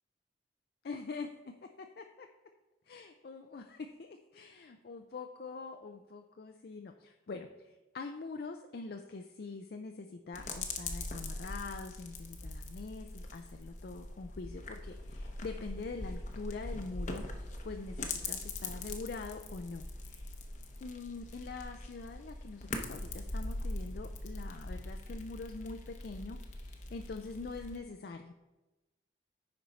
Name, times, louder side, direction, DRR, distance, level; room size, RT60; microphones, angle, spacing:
voice 1, 0.8-2.3 2.9-17.3 17.6-20.3 20.8-28.4, left 4 dB, 55° left, 5 dB, 0.4 m, -44 dB
sound 1, 10.3-27.8, left 2 dB, 40° left, 0.8 m, -42 dB
10.0 x 4.5 x 4.1 m, 1.1 s
head